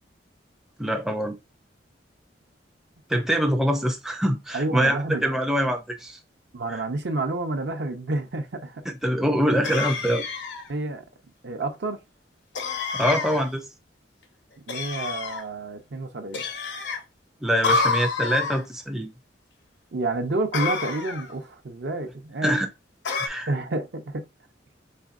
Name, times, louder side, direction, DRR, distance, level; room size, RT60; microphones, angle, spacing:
voice 1, 0.8-1.4 3.1-6.2 6.7-6.8 9.0-10.3 12.9-13.7 17.4-19.1 22.4-22.7 23.2-23.5, equal, 5° right, 0.4 m, -24 dB
voice 2, 4.5-5.4 6.5-8.9 10.7-11.0 11.4-12.0 14.7-16.5 19.9-22.5 23.5-24.3, right 2 dB, 70° right, 0.7 m, -29 dB
sound 1, 9.6-10.7 12.6-13.5 14.7-15.4 16.3-17.0 17.6-18.6 20.5-21.3 23.1-23.3, left 4 dB, 80° left, 0.7 m, -28 dB
4.2 x 3.5 x 2.4 m
head